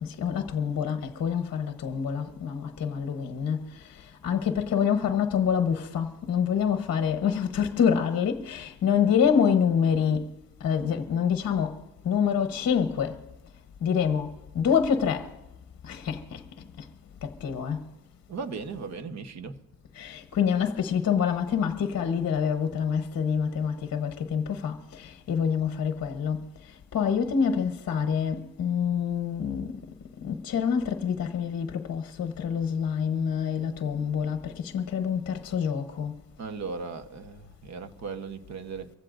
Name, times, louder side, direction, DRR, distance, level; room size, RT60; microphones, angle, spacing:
voice 1, 0.0-10.3 10.6-11.8 12.0-13.2 13.8-15.3 15.8-16.4 16.8-16.9 17.2-17.8 19.9-26.4 26.9-29.8 30.2-36.1, left 7 dB, 40° left, 1.0 m, -26 dB
voice 2, 18.3-19.6 36.4-38.9, right 5 dB, 45° right, 1.1 m, -37 dB
24.5 x 16.0 x 2.6 m
cardioid pair, 135°, 38 cm